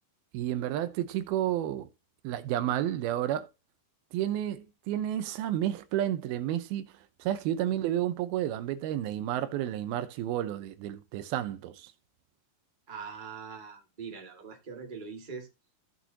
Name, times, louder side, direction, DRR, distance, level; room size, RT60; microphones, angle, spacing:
voice 1, 0.3-1.9 2.2-3.5 4.1-6.9 7.2-11.9, right 12 dB, 85° right, 2.7 m, -31 dB
voice 2, 12.9-15.5, right 5 dB, 15° right, 1.8 m, -42 dB
15.5 x 6.2 x 3.0 m
omnidirectional pair, 4.3 m